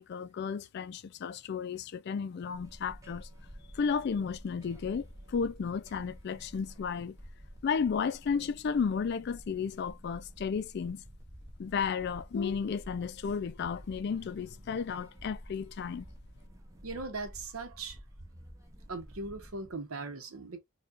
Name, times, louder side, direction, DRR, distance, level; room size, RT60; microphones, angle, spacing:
voice 1, 0.0-3.3 3.7-7.2 7.6-11.0 11.6-16.1, left 6 dB, 50° left, 0.3 m, -33 dB
sound 1, 2.5-19.8, equal, 15° right, 0.6 m, -51 dB
voice 2, 16.8-18.0 18.9-20.6, right 3 dB, 80° right, 0.8 m, -39 dB
4.5 x 2.3 x 2.4 m
head